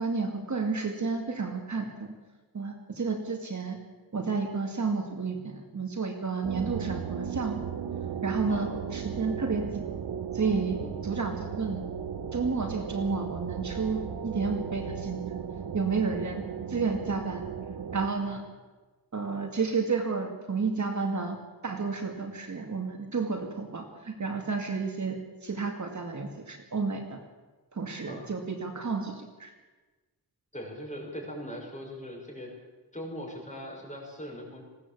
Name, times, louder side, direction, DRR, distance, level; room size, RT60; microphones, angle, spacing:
voice 1, 0.0-2.1 2.5-3.8 4.1-7.7 8.2-9.8 10.3-11.8 12.3-15.4 15.7-16.4 16.7-17.4 17.9-18.4 19.1-21.4 21.6-27.2 27.7-29.5, right 4 dB, 50° right, 3 dB, 2.3 m, -31 dB
sound 1, 6.4-18.1, right 7 dB, 80° right, 1.3 m, -36 dB
voice 2, 30.5-32.5 32.9-34.6, equal, 20° left, -1 dB, 6.3 m, -40 dB
20.5 x 16.5 x 8.5 m, 1.2 s
wide cardioid pair, 145°, 38 cm